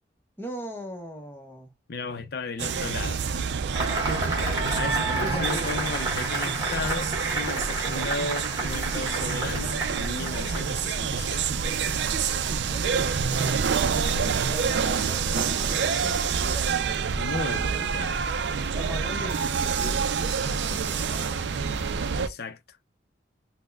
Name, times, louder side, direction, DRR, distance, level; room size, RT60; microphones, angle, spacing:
voice 1, 0.4-1.7 4.0-4.3 5.2-5.8 12.6-12.9 13.4-16.8 18.7-21.4, equal, 15° left, 0.8 m, -39 dB
voice 2, 1.9-3.2 4.7-11.5 17.2-18.3 22.2-22.8, left 3 dB, 60° left, 0.5 m, -35 dB
sound 1, 2.6-22.3, right 6 dB, 70° right, 0.4 m, -27 dB
Cheering / Applause / Crowd, 3.8-11.0, right 3 dB, 20° right, 1.3 m, -31 dB
4.2 x 2.1 x 2.3 m
head